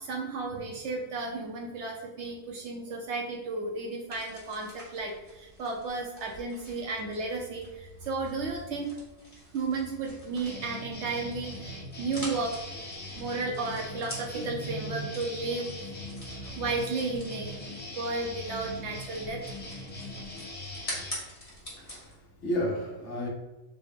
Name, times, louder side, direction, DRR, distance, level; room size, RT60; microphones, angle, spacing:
voice 1, 0.0-8.9 9.5-12.6 13.1-16.1 16.6-19.4, right 3 dB, 65° right, 1 dB, 0.8 m, -33 dB
sound 1, 4.1-22.2, left 1 dB, 30° left, 1.1 m, -46 dB
sound 2, 10.4-21.1, left 2 dB, 10° left, 0.6 m, -41 dB
voice 2, 21.5-23.3, left 1 dB, 60° left, -1 dB, 1.1 m, -33 dB
4.1 x 2.1 x 3.5 m, 1.1 s
omnidirectional pair, 1.4 m